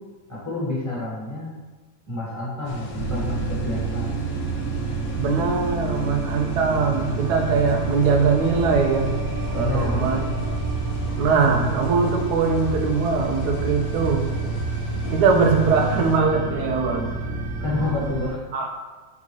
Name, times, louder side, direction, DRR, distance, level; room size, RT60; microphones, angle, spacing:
voice 1, 0.3-1.5 2.1-4.1 9.5-10.1 17.6-18.4, left 2 dB, 10° left, -9 dB, 1.4 m, -29 dB
sound 1, 2.6-16.2, left 2 dB, 70° left, 1.0 m, -38 dB
sound 2, 2.9-18.3, right 3 dB, 60° right, 0.9 m, -29 dB
voice 2, 5.1-9.1 9.6-10.3 11.2-14.3 15.1-17.1 18.5-18.7, right 5 dB, 90° right, 3 dB, 1.2 m, -21 dB
sound 3, 7.5-15.6, right 2 dB, 55° left, 1.3 m, -34 dB
3.9 x 3.5 x 3.0 m, 1.3 s
omnidirectional pair, 1.7 m